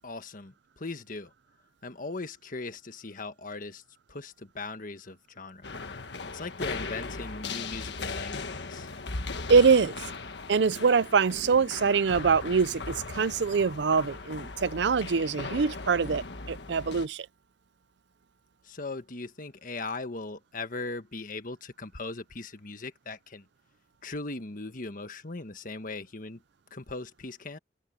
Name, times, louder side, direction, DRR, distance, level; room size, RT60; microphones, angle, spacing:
voice 1, 0.0-1.3 1.8-3.8 4.1-5.7 6.3-8.9 18.6-23.5 24.0-26.4 26.7-27.6, left 3 dB, 50° left, 1.4 m, -39 dB
sound 1, 5.6-17.1, left 3 dB, 70° left, 1.5 m, -38 dB
voice 2, 9.5-10.0 10.5-17.3, right 5 dB, 75° right, 0.5 m, -24 dB
open air
head